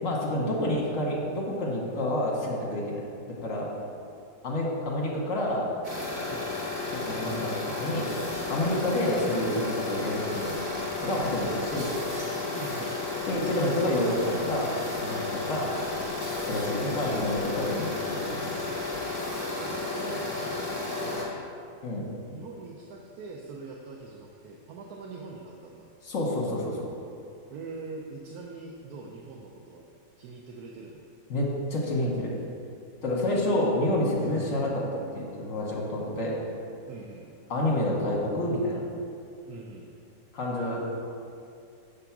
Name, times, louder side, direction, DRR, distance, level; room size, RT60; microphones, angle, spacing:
voice 1, 0.0-3.0 3.3-3.7 4.4-5.7 6.9-7.5 7.8-8.1 8.5-10.5 11.0-11.9 13.2-14.7 15.0-15.7 16.5-18.6 21.8-22.0 26.0-26.9 31.3-32.3 33.0-36.4 37.5-38.8 40.3-40.9, left 1 dB, 50° left, -3 dB, 1.4 m, -28 dB
sound 1, 5.8-21.2, left 3 dB, 20° right, 1.8 m, -33 dB
voice 2, 12.5-12.9 16.8-17.0 19.6-21.4 22.3-25.9 27.5-29.8 30.2-31.0 34.2-34.4 36.9-37.3 39.5-39.9, right 4 dB, 70° right, -1 dB, 1.0 m, -42 dB
6.7 x 3.6 x 5.8 m, 2.5 s
omnidirectional pair, 1.9 m